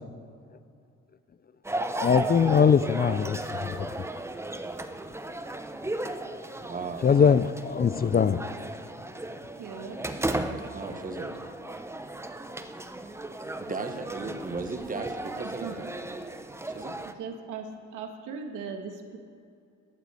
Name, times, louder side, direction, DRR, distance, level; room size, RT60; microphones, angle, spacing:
sound 1, 1.6-17.1, right 1 dB, 10° right, 0.8 m, -35 dB
voice 1, 2.0-3.9 7.0-8.5, left 6 dB, 30° left, 0.5 m, -22 dB
voice 2, 6.6-7.4 10.7-11.4 13.6-17.0, right 4 dB, 25° right, 1.3 m, -37 dB
voice 3, 9.6-10.0 10.3-10.6 10.9-11.2 15.6-15.8 17.2-19.2, right 5 dB, 85° right, 1.7 m, -39 dB
12.0 x 8.0 x 8.3 m
cardioid pair, 90°, 30 cm